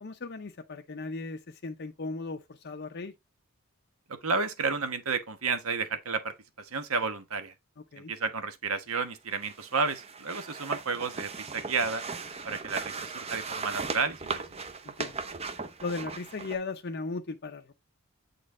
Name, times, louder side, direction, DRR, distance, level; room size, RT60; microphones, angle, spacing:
voice 1, 0.0-3.1 7.9-8.1 14.8-15.2 15.8-17.7, left 3 dB, 50° left, 0.6 m, -37 dB
voice 2, 4.1-7.5 8.0-12.0 12.4-14.6, right 4 dB, 75° right, 1.2 m, -32 dB
sound 1, 9.3-16.6, right 4 dB, 30° right, 0.7 m, -38 dB
8.4 x 4.2 x 3.7 m
head